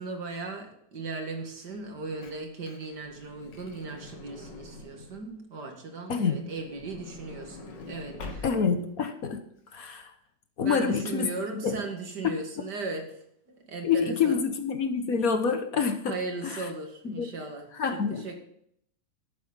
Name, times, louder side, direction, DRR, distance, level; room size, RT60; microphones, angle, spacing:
voice 1, 0.0-8.5 10.6-13.2 13.5-14.4 16.1-18.4, right 3 dB, 70° right, 3 dB, 2.5 m, -37 dB
Truck / Door, 2.0-5.3 6.3-8.9 9.6-9.7 9.9-10.0, left 2 dB, 80° left, 2.3 m, -45 dB
voice 2, 8.4-9.4 9.7-10.1 10.6-11.3 11.6-11.8 13.8-16.1 16.4-16.6 17.0-17.3 17.8-18.2, left 6 dB, 55° left, 7 dB, 1.5 m, -27 dB
12.0 x 8.6 x 5.4 m, 0.70 s
omnidirectional pair, 1.9 m